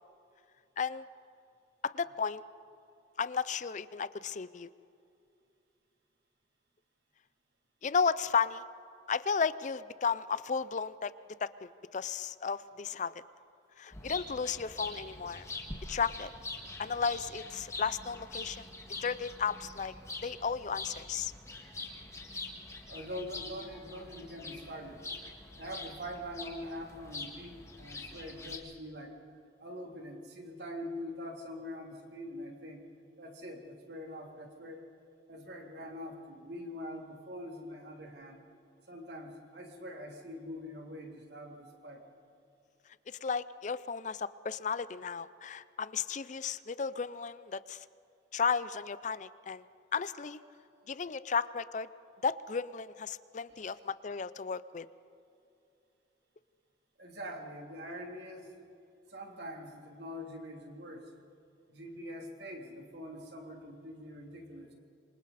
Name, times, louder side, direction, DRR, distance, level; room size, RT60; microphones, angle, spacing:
voice 1, 1.8-2.4 3.2-4.7 7.8-8.6 9.1-11.1 11.4-13.2 13.8-15.5 15.9-16.3 16.8-18.6 19.0-19.9 20.2-21.3 43.1-47.8 48.3-49.6 49.9-50.4 50.9-51.9 52.2-54.9, left 5 dB, 45° left, 16 dB, 0.5 m, -34 dB
sound 1, 13.9-28.6, left 3 dB, 15° left, 2.0 m, -44 dB
voice 2, 22.9-25.0 25.6-29.1 29.6-32.9 33.2-34.8 35.3-38.4 38.9-42.0 50.4-50.5 53.5-53.7 57.0-58.5 59.1-61.1 61.7-64.7, equal, 65° right, 1 dB, 3.1 m, -44 dB
26.5 x 24.5 x 4.2 m, 2.6 s
head